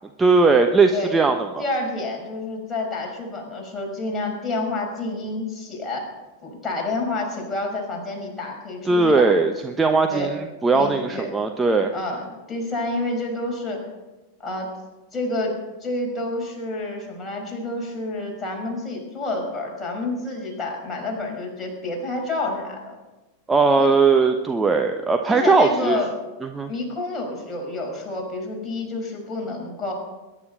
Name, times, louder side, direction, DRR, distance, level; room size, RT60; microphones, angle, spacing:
voice 1, 0.2-1.6 8.9-11.9 23.5-26.0 26.5-26.7, right 4 dB, 10° right, 4 dB, 1.0 m, -19 dB
voice 2, 1.6-6.1 6.4-9.3 10.1-10.3 10.7-11.3 11.9-13.8 14.4-14.7 15.1-22.9 23.7-23.9 25.3-26.1 26.7-29.9, left 2 dB, 15° left, 0 dB, 5.7 m, -29 dB
22.0 x 11.0 x 5.5 m, 1.1 s
figure-of-eight pair, 90°, 0 cm